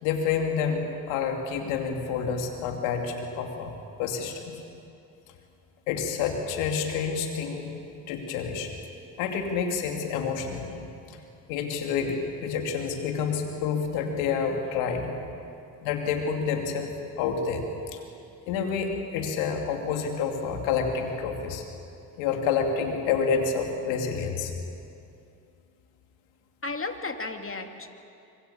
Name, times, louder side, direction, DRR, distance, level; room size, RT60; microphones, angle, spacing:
voice 1, 0.0-3.7 4.0-4.6 5.9-7.7 8.1-8.7 9.2-10.8 11.5-15.1 15.8-17.7 17.9-18.0 18.5-21.6 22.2-24.5, left 6 dB, 85° left, 3 dB, 2.8 m, -28 dB
voice 2, 26.6-27.9, left 3 dB, 30° left, 5 dB, 2.8 m, -34 dB
25.5 x 24.0 x 7.2 m, 2.6 s
hypercardioid pair, 45°, 45 cm